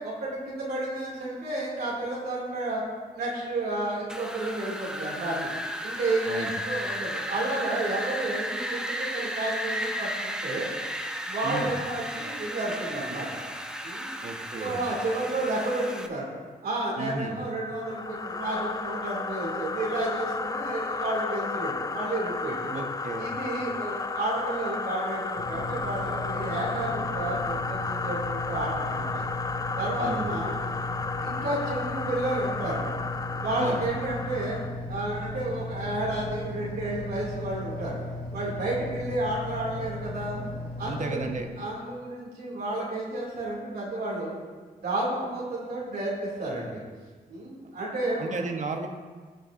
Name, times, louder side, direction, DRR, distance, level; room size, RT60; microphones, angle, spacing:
voice 1, 0.0-2.8 3.1-5.5 5.8-10.7 11.3-13.4 13.8-14.1 14.6-16.3 16.6-22.7 23.2-29.2 29.8-30.5 31.2-32.8 33.3-38.0 38.3-40.4 40.8-41.3 41.6-44.3 44.7-46.8 47.3-48.3, right 2 dB, 85° right, -5 dB, 2.4 m, -31 dB
Wind, 4.1-16.1, equal, 5° right, 0.7 m, -34 dB
voice 2, 11.4-11.7 14.2-14.8 17.0-17.4 22.7-23.3 30.0-30.4 33.5-33.8 40.8-41.5 48.2-48.9, right 3 dB, 50° right, 4 dB, 1.1 m, -34 dB
sound 1, 17.7-34.8, left 4 dB, 25° left, 0.3 m, -33 dB
sound 2, 25.4-41.4, left 2 dB, 75° left, 2.5 m, -36 dB
15.0 x 6.6 x 2.5 m, 1.4 s
cardioid pair, 80°, 16 cm